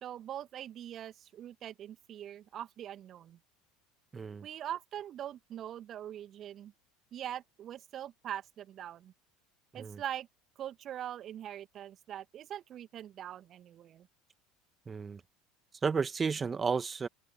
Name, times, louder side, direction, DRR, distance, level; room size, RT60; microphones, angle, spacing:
voice 1, 0.0-3.4 4.4-6.7 7.1-9.1 9.7-10.3 10.6-14.1, right 11 dB, 40° right, 2.3 m, -42 dB
voice 2, 4.1-4.5 9.8-10.0 14.9-15.2 15.8-17.1, right 5 dB, 25° right, 2.2 m, -32 dB
open air
figure-of-eight pair, 70°, 0 cm